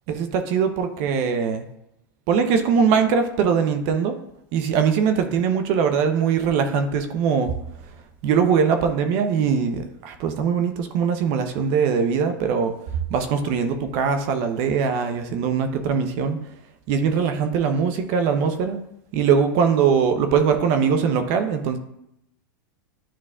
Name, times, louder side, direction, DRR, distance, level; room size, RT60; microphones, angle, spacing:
voice 1, 0.1-1.7 2.3-4.2 4.5-7.5 8.2-12.7 13.1-16.4 16.9-18.8 19.1-21.8, right 6 dB, 50° right, 8 dB, 0.7 m, -21 dB
10.0 x 4.1 x 2.4 m, 0.79 s
hypercardioid pair, 115°, 11 cm